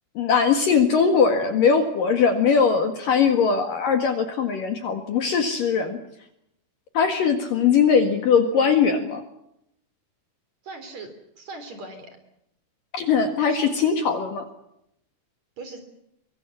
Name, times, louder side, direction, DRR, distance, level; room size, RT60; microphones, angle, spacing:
voice 1, 0.2-6.0 6.9-9.2 12.9-14.5, left 6 dB, 55° left, 6 dB, 2.9 m, -20 dB
voice 2, 10.6-11.1 11.4-12.1 13.5-13.6 15.6-15.8, right 3 dB, 40° right, 8 dB, 4.4 m, -39 dB
24.5 x 23.0 x 7.1 m, 0.79 s
omnidirectional pair, 5.3 m